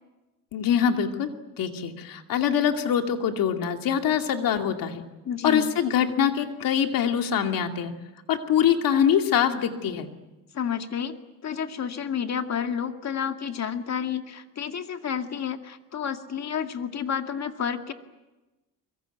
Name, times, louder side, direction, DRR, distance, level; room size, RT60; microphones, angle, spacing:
voice 1, 0.5-1.3 1.6-5.0 5.4-7.9 8.3-10.1, left 8 dB, 70° left, 5 dB, 2.5 m, -24 dB
voice 2, 5.3-5.7 10.5-11.1 11.4-17.9, left 8 dB, 50° left, 6 dB, 2.1 m, -30 dB
24.0 x 22.5 x 9.1 m, 1.1 s
cardioid pair, 85°, 35 cm